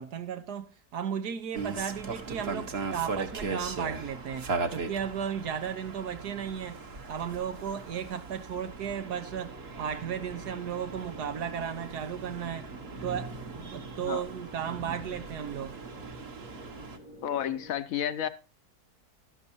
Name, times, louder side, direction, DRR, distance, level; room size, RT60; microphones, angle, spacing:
voice 1, 0.0-6.8 7.1-12.7 13.0-15.8, right 8 dB, 85° right, 1.6 m, -35 dB
sound 1, 1.5-17.0, right 4 dB, 45° right, 1.3 m, -39 dB
sound 2, 8.8-17.7, right 1 dB, 60° right, 2.1 m, -46 dB
voice 2, 17.2-18.3, left 10 dB, 65° left, 1.1 m, -31 dB
12.5 x 12.0 x 2.7 m
omnidirectional pair, 1.7 m